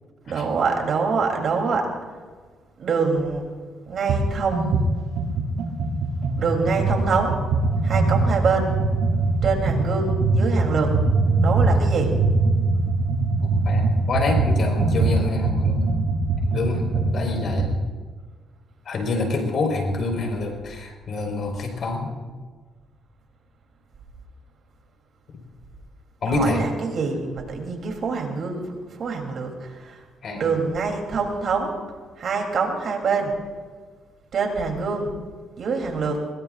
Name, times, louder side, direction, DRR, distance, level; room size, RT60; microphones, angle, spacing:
voice 1, 0.3-1.9 2.8-3.4 3.9-4.9 6.4-7.4 7.8-8.7 9.4-10.9 11.4-12.1 26.2-30.0 30.3-31.7 32.2-33.3 34.3-35.1 35.6-36.2, right 4 dB, 60° right, 2 dB, 3.3 m, -25 dB
sound 1, 4.1-4.2 4.5-17.8, right 3 dB, 90° right, 2.3 m, -22 dB
voice 2, 13.6-15.9 16.5-17.7 18.8-22.1 26.2-26.6 30.2-30.5, left 3 dB, 55° left, 2 dB, 4.7 m, -26 dB
22.0 x 21.0 x 2.5 m, 1.5 s
cardioid pair, 90°, 0 cm